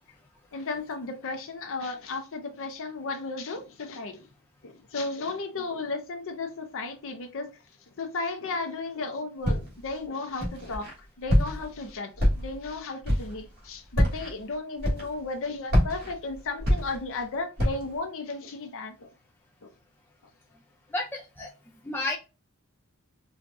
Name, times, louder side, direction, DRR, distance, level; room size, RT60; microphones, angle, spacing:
voice 1, 0.5-4.3 4.6-7.6 8.0-10.9 11.2-19.1 19.6-19.7, left 3 dB, 65° left, 0.6 m, -34 dB
Walk footsteps, 9.4-9.9 10.4-10.9 11.3-11.8 12.2-12.7 13.0-13.4 13.9-14.3 14.8-15.3 15.7-17.2 17.6-18.0, equal, 45° right, 1.7 m, -25 dB
voice 2, 20.9-21.5 21.8-22.2, left 2 dB, 10° left, 0.4 m, -31 dB
4.6 x 2.3 x 2.6 m
head